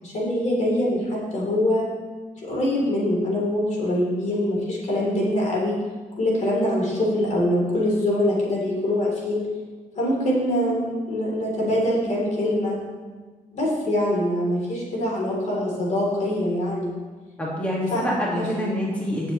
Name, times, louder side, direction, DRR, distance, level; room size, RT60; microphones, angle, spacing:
voice 1, 0.0-1.9 2.4-5.8 6.2-9.4 10.0-12.8 13.5-17.0 17.9-18.0 18.3-18.5, left 1 dB, 60° left, -4 dB, 3.7 m, -24 dB
voice 2, 17.4-19.3, equal, 10° left, -5 dB, 2.2 m, -26 dB
16.5 x 7.2 x 3.3 m, 1.4 s
cardioid pair, 110°, 14 cm